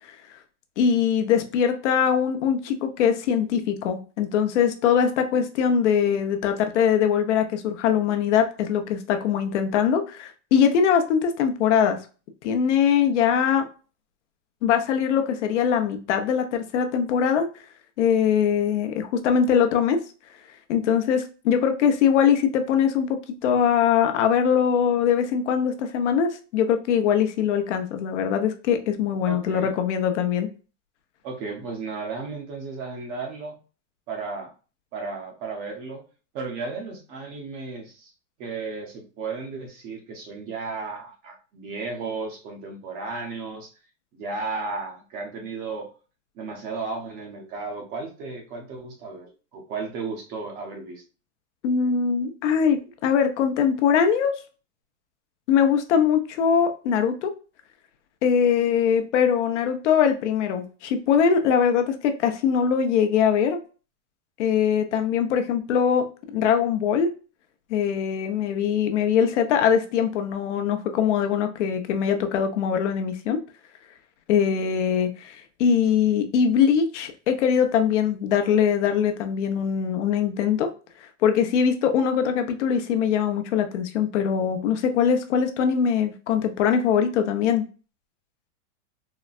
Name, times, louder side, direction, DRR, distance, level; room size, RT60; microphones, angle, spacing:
voice 1, 0.8-12.0 12.4-13.7 14.6-17.5 18.0-20.0 20.7-30.5 51.6-54.3 55.5-57.3 58.2-63.6 64.4-66.1 66.3-67.1 67.7-73.4 74.3-80.7 81.0-87.7, left 7 dB, 70° left, 6 dB, 0.8 m, -22 dB
voice 2, 29.2-29.7 31.2-33.6 34.1-34.5 34.9-36.0 36.3-38.1 38.4-43.7 44.1-45.9 46.4-51.0, right 4 dB, 25° right, 2 dB, 0.5 m, -34 dB
4.0 x 2.1 x 2.3 m, 0.35 s
supercardioid pair, 165°, 38 cm